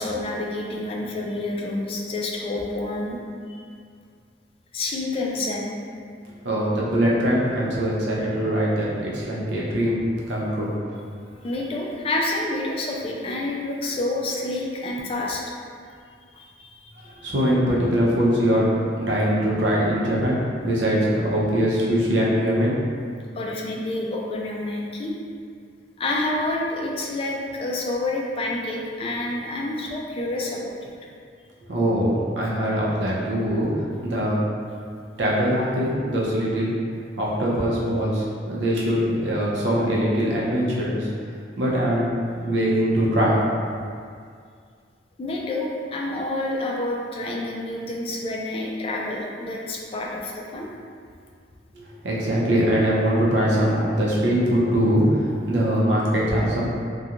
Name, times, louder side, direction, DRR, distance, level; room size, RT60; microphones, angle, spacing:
voice 1, 0.0-3.2 4.7-5.7 11.4-15.4 16.3-17.3 23.4-25.1 26.0-30.9 45.2-50.7, left 2 dB, 35° left, -2 dB, 0.3 m, -28 dB
voice 2, 6.4-10.7 17.0-18.7 19.0-22.8 31.7-34.5 35.2-36.8 37.2-41.1 41.6-42.1 42.3-43.5 51.7-56.6, equal, 80° right, -5 dB, 0.6 m, -22 dB
2.4 x 2.2 x 2.8 m, 2.2 s
head